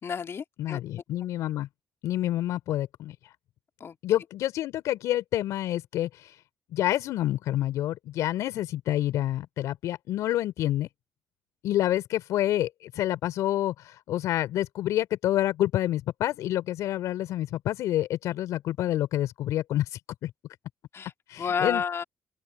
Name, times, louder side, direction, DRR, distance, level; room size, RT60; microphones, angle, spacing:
voice 1, 0.0-0.8 3.8-4.0 20.9-21.1 21.4-22.0, left 6 dB, 50° left, 2.6 m, -30 dB
voice 2, 0.6-1.7 2.0-3.1 4.0-6.3 6.7-10.9 11.6-20.3 21.3-21.8, left 13 dB, 70° left, 3.4 m, -28 dB
hypercardioid pair, 45°, 6 cm